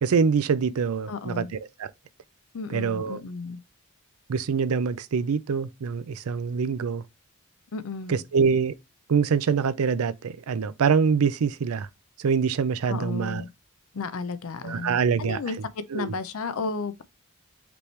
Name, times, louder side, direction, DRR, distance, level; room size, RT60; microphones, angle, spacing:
voice 1, 0.0-1.4 1.8-1.9 2.7-3.2 4.3-7.0 8.1-8.7 9.1-11.9 12.2-13.4 14.6-15.4 15.9-16.1, right 6 dB, 85° right, 0.4 m, -24 dB
voice 2, 1.1-1.5 2.5-3.6 7.7-8.2 12.9-13.5 13.9-17.0, left 4 dB, 75° left, 0.5 m, -33 dB
5.1 x 3.0 x 3.2 m
head